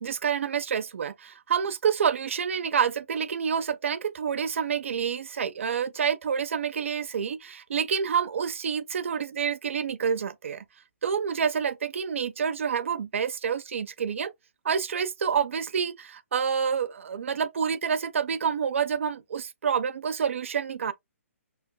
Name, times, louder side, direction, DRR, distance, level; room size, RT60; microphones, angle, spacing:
voice 1, 0.0-10.6 11.0-14.3 14.6-20.9, right 7 dB, 60° right, 0.5 m, -28 dB
6.1 x 2.1 x 2.2 m
figure-of-eight pair, 130°, 8 cm